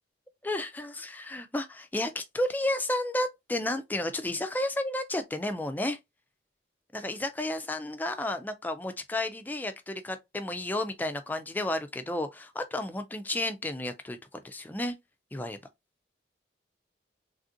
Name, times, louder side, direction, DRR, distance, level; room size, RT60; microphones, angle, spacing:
voice 1, 0.4-6.0 6.9-14.9 15.3-15.6, left 1 dB, 10° left, 0.3 m, -32 dB
3.3 x 2.5 x 2.5 m
head